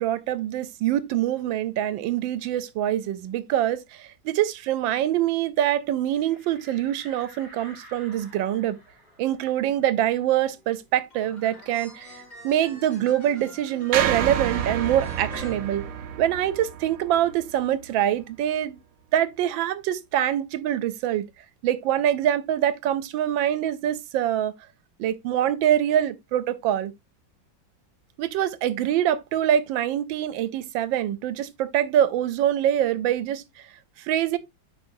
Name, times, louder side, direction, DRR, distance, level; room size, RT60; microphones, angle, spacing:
voice 1, 0.0-8.8 9.2-15.8 16.2-18.8 19.1-21.3 21.6-24.5 25.0-26.9 28.2-33.4 34.0-34.4, right 11 dB, 85° right, 1.4 m, -24 dB
sound 1, 6.1-11.3 11.7-11.8 12.1-13.7, right 1 dB, 25° right, 3.8 m, -52 dB
sound 2, 11.1-16.5, equal, 85° left, 3.9 m, -43 dB
sound 3, 13.9-18.2, right 9 dB, 65° right, 0.9 m, -30 dB
8.6 x 5.0 x 2.6 m
omnidirectional pair, 2.0 m